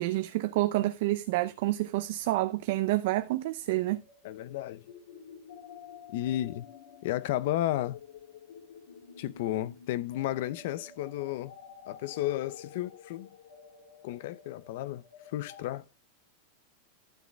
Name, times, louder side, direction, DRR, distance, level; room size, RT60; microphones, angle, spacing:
voice 1, 0.0-4.0, right 17 dB, 55° right, 0.7 m, -28 dB
sound 1, 3.9-15.7, left 7 dB, 80° left, 3.9 m, -51 dB
voice 2, 4.2-4.8 6.1-6.7 7.0-8.0 9.2-11.5 11.9-13.3 14.0-15.0 15.3-15.8, left 14 dB, 55° left, 0.8 m, -33 dB
13.0 x 6.5 x 3.5 m
supercardioid pair, 170°, 0 cm